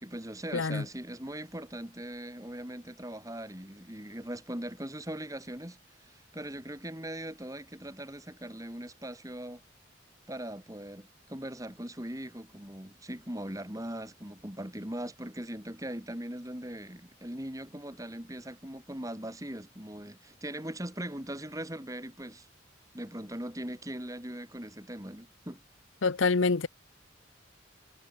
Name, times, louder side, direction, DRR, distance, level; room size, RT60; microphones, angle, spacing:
voice 1, 0.0-9.6 10.3-22.5 22.9-25.6, right 1 dB, 15° right, 3.0 m, -40 dB
voice 2, 0.5-0.8 26.0-26.7, left 4 dB, 80° left, 0.8 m, -26 dB
head